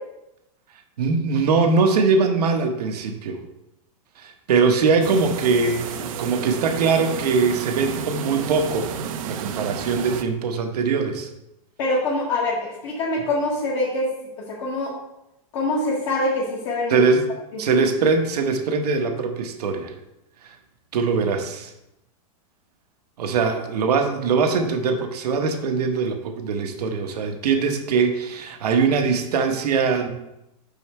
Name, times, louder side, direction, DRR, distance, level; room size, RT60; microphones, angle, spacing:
voice 1, 1.0-3.4 4.2-8.9 9.3-11.3 16.9-17.3 17.6-19.9 20.4-20.5 20.9-21.7 23.2-30.1, right 4 dB, 85° right, 5 dB, 1.1 m, -22 dB
sound 1, 5.0-10.2, right 7 dB, 60° right, 0.6 m, -31 dB
voice 2, 11.8-12.6 12.8-14.1 14.5-14.9 15.5-17.0, left 2 dB, 50° left, -5 dB, 1.6 m, -24 dB
5.8 x 5.5 x 4.3 m, 0.89 s
supercardioid pair, 160°, 20 cm